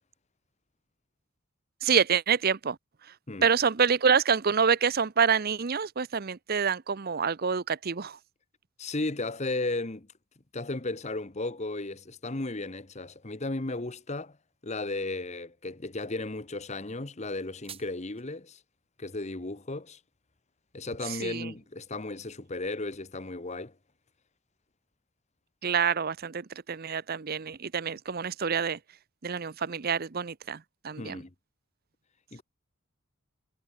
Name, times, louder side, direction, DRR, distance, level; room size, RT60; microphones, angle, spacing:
voice 1, 1.8-2.8 3.0-3.1 3.4-8.2 21.0-21.5 25.6-28.8 29.2-31.2, right 6 dB, 45° right, 0.6 m, -27 dB
voice 2, 8.8-10.1 10.5-14.4 14.6-18.6 19.0-20.0 20.7-23.7 31.0-31.3 32.3-32.4, left 2 dB, 30° left, 1.1 m, -35 dB
sound 1, 17.2-18.2, right 8 dB, 25° right, 5.9 m, -49 dB
head